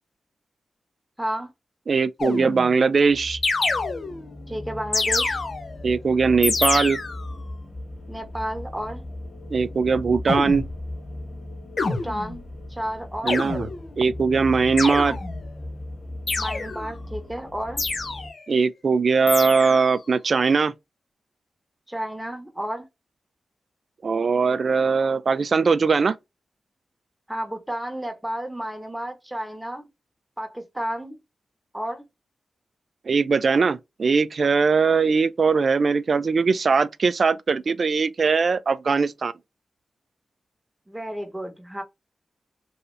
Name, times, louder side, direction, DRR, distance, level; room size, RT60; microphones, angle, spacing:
voice 1, 1.2-1.5 4.5-5.4 8.1-9.0 11.8-12.4 12.7-13.4 16.4-17.8 21.9-22.9 27.3-29.9 30.4-31.2 31.7-32.0 40.9-41.8, equal, 10° right, 1.0 m, -32 dB
voice 2, 1.9-3.4 5.8-7.0 9.5-10.7 13.2-13.7 14.0-15.2 18.5-20.7 24.0-26.2 33.1-39.3, right 5 dB, 60° right, 0.3 m, -20 dB
sound 1, 2.2-2.8 3.4-4.3 4.9-5.9 6.4-7.3 10.3-10.8 11.8-12.5 13.3-13.9 14.8-15.5 16.3-16.9 17.8-18.5 19.3-19.9, left 3 dB, 60° left, 0.7 m, -27 dB
sound 2, 3.0-18.3, left 1 dB, 45° left, 1.7 m, -37 dB
3.1 x 2.7 x 2.6 m
supercardioid pair, 40°, 0 cm